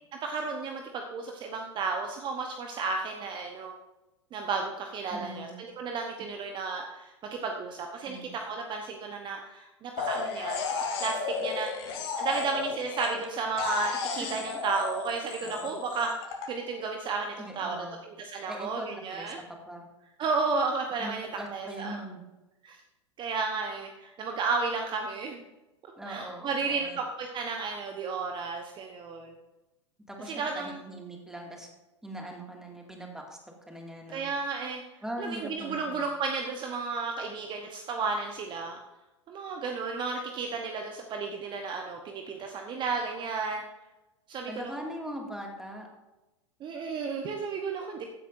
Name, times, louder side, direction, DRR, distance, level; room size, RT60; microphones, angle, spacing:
voice 1, 0.2-3.7 4.3-16.1 16.5-19.4 20.2-22.0 22.6-22.8 23.2-25.4 26.0-29.3 30.3-30.8 34.1-34.8 35.2-38.8 39.3-43.6 44.3-44.7 46.6-48.1, right 4 dB, 30° right, 3 dB, 1.0 m, -33 dB
voice 2, 5.1-5.5 8.1-8.3 15.4-15.7 17.4-18.0 18.5-19.3 19.7-19.9 21.0-22.2 26.0-27.0 30.1-31.7 32.0-33.4 33.7-34.3 35.0-36.0 44.5-45.9, right 1 dB, 5° right, 1 dB, 2.2 m, -41 dB
sound 1, 10.0-13.3 13.6-16.5, left 5 dB, 55° left, 2.4 m, -33 dB
15.5 x 8.9 x 2.6 m, 1.0 s
figure-of-eight pair, 90°, 16 cm